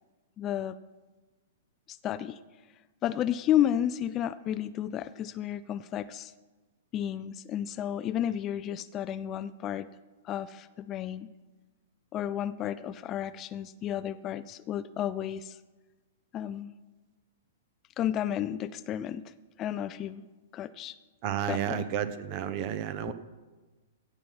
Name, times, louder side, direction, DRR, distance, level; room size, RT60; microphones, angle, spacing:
voice 1, 0.4-0.8 1.9-2.4 3.0-6.3 6.9-9.9 10.2-11.3 12.1-15.6 16.3-16.7 18.0-19.3 19.6-20.2 20.5-21.0 21.5-21.8 23.0-23.1, left 11 dB, 30° left, 15 dB, 0.4 m, -32 dB
voice 2, 21.2-23.1, right 10 dB, 40° right, 12 dB, 0.9 m, -31 dB
17.0 x 5.8 x 6.1 m, 1.2 s
figure-of-eight pair, 110°, 0 cm